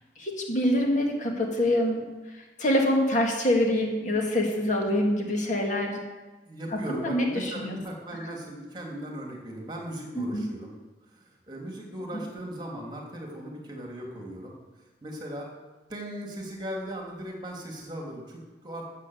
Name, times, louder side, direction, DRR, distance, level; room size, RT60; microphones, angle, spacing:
voice 1, 0.2-2.1 2.6-6.0 6.7-7.8 10.2-10.5, left 1 dB, 45° left, 1 dB, 2.2 m, -25 dB
voice 2, 6.5-10.7 11.1-14.5 15.0-15.5 15.9-18.8, right 1 dB, 25° right, 0 dB, 2.8 m, -38 dB
13.0 x 7.6 x 7.9 m, 1.2 s
head